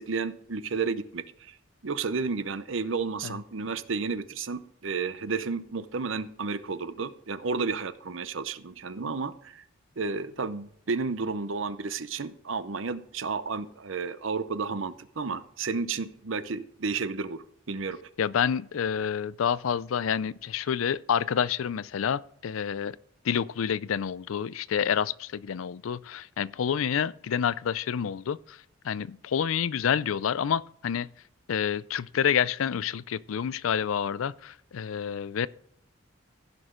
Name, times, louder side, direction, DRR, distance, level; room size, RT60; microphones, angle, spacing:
voice 1, 0.0-1.6 1.8-9.6 10.0-18.0, right 4 dB, 70° right, 0.7 m, -32 dB
voice 2, 18.2-23.0 23.2-28.6 28.8-31.1 31.5-35.5, left 8 dB, 90° left, 0.4 m, -28 dB
16.0 x 6.1 x 3.8 m
head